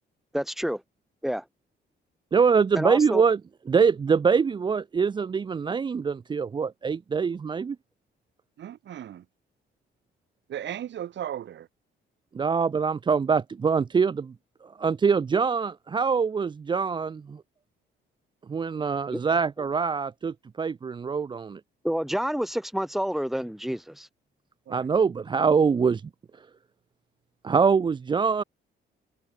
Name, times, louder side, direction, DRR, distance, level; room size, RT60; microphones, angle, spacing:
voice 1, 0.3-0.8 1.2-1.4 2.7-3.2 19.1-19.2 21.8-24.1, equal, ahead, 3.6 m, -28 dB
voice 2, 2.3-3.4 3.7-7.8 12.3-14.3 14.6-17.4 18.5-21.6 24.7-26.0 27.4-28.4, right 5 dB, 25° right, 0.4 m, -24 dB
voice 3, 8.6-9.2 10.5-11.7 24.7-24.9, right 10 dB, 65° right, 4.1 m, -36 dB
cardioid pair, 100°, 20 cm